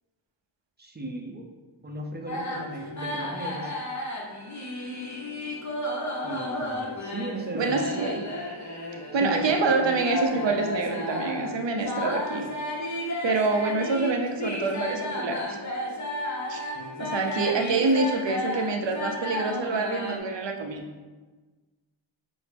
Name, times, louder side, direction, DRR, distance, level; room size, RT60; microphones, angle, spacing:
voice 1, 0.8-1.5 1.8-3.8 6.2-7.9 9.1-9.5 16.7-17.1, right 2 dB, 20° right, 1 dB, 0.6 m, -36 dB
sound 1, 2.3-20.2, left 1 dB, 35° left, 0.8 m, -33 dB
voice 2, 7.5-8.3 9.1-12.5 13.2-15.4 16.5-16.7 17.0-20.9, right 3 dB, 65° right, 3 dB, 0.6 m, -26 dB
6.1 x 2.1 x 3.3 m, 1.3 s
wide cardioid pair, 50°, 48 cm